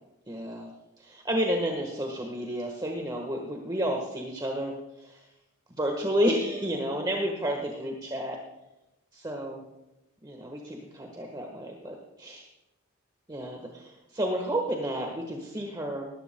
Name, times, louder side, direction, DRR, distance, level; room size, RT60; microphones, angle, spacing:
voice 1, 0.3-0.7 1.0-5.2 5.8-8.4 9.1-9.6 10.2-12.5 13.3-16.1, equal, 20° right, 1 dB, 1.3 m, -31 dB
19.0 x 13.0 x 2.2 m, 0.94 s
head